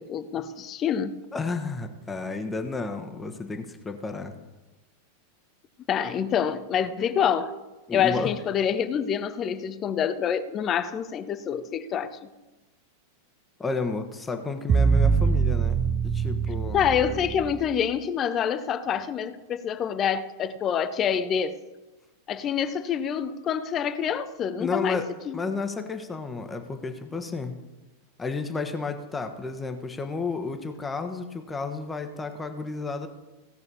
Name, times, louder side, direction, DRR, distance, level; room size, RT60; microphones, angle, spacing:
voice 1, 0.0-1.2 5.9-7.5 7.9-12.3 16.7-21.6 22.3-25.4, left 8 dB, 30° left, 12 dB, 0.8 m, -27 dB
voice 2, 1.3-4.3 7.9-8.3 13.6-16.8 24.6-25.0 25.3-27.5 28.2-33.1, left 4 dB, 15° left, 6 dB, 1.3 m, -32 dB
sound 1, 14.7-17.8, right 6 dB, 25° right, 0.5 m, -24 dB
16.5 x 6.8 x 7.0 m, 1.1 s
figure-of-eight pair, 90°, 0 cm